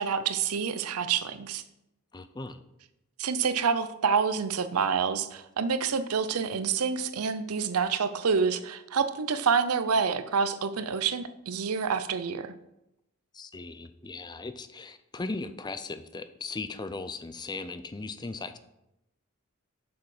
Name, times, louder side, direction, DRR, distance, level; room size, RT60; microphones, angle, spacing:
voice 1, 0.0-1.6 3.2-12.5, right 6 dB, 80° right, 12 dB, 0.6 m, -27 dB
voice 2, 2.1-2.6 13.3-18.6, left 3 dB, 20° left, 11 dB, 0.5 m, -38 dB
7.0 x 6.3 x 4.9 m, 0.86 s
head